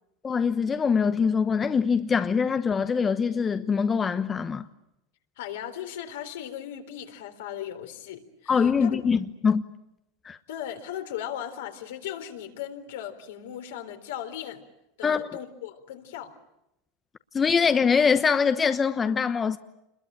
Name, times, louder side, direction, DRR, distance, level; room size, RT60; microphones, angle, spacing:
voice 1, 0.2-4.7 8.5-9.6 10.2-10.4 15.0-15.3 17.3-19.6, left 6 dB, 25° left, 1.0 m, -23 dB
voice 2, 5.4-9.0 10.5-14.6 15.0-16.3, left 10 dB, 80° left, 3.9 m, -37 dB
27.5 x 22.0 x 8.9 m
supercardioid pair, 110°, 0 cm